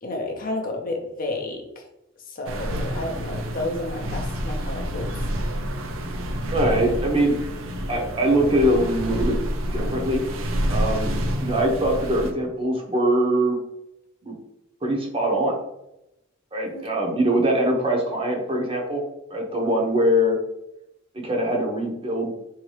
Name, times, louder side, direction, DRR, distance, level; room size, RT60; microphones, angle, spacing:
voice 1, 0.0-1.9 2.3-5.1 11.0-11.2 16.7-17.2, left 2 dB, 40° left, 1 dB, 0.6 m, -31 dB
sound 1, 2.4-12.3, equal, 70° right, 0.6 m, -28 dB
voice 2, 6.5-7.3 7.9-9.4 9.7-10.2 10.7-13.6 14.2-14.4 14.8-15.6 16.5-19.0 19.3-20.4 21.1-22.3, right 1 dB, 25° right, 0 dB, 0.7 m, -22 dB
4.3 x 2.8 x 3.2 m, 0.88 s
head